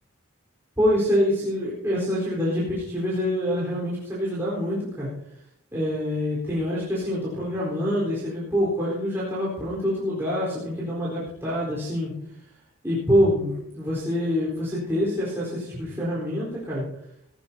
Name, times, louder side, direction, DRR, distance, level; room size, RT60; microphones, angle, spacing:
voice 1, 0.8-5.1 5.7-12.1 12.8-16.8, equal, 10° right, -8 dB, 4.2 m, -26 dB
18.0 x 14.5 x 2.8 m, 0.74 s
head